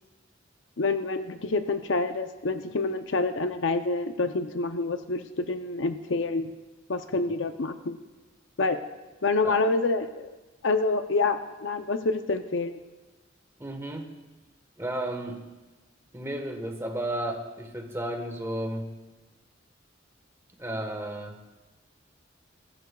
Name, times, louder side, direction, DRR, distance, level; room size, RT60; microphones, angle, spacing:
voice 1, 0.8-6.5 6.9-8.0 8.6-8.8 9.2-10.3 10.6-12.8, left 3 dB, 70° left, 8 dB, 0.6 m, -27 dB
voice 2, 13.6-14.1 14.8-15.4 16.1-18.9 20.6-21.4, right 1 dB, 15° right, 4 dB, 1.3 m, -33 dB
21.5 x 13.0 x 2.3 m, 1.2 s
head